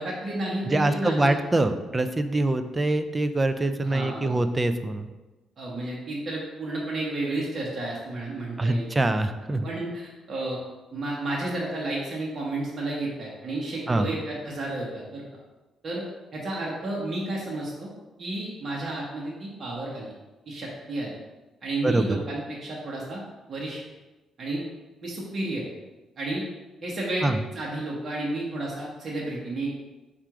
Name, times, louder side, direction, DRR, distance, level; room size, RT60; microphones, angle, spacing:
voice 1, 0.0-1.3 3.8-4.3 5.6-8.9 9.6-10.6 10.9-15.2 15.8-16.0 16.3-17.9 18.2-20.1 20.5-21.2 21.6-23.2 23.5-23.8 24.4-24.6 25.0-25.7 26.2-26.4 26.8-29.7, right 2 dB, 45° right, -4 dB, 1.0 m, -31 dB
voice 2, 0.7-5.1 8.6-9.7 13.9-14.1 21.8-22.2 27.2-27.4, right 2 dB, 20° right, 9 dB, 0.3 m, -24 dB
4.3 x 2.5 x 4.7 m, 1.1 s
cardioid pair, 90°, 0 cm